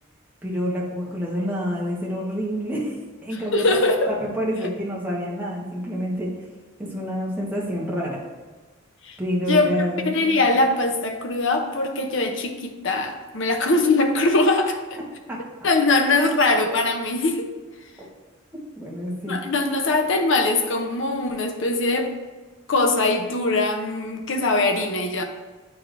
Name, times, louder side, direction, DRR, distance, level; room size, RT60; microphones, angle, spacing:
voice 1, 0.4-3.0 3.2-3.8 4.1-6.3 6.8-8.2 9.2-10.5 15.3-15.4 18.8-19.4, equal, 10° right, -5 dB, 1.2 m, -27 dB
voice 2, 3.5-4.1 9.0-9.2 9.5-15.0 15.6-17.5 19.3-22.1 22.7-25.2, left 2 dB, 65° left, 5 dB, 0.7 m, -22 dB
8.4 x 4.7 x 2.6 m, 1.3 s
head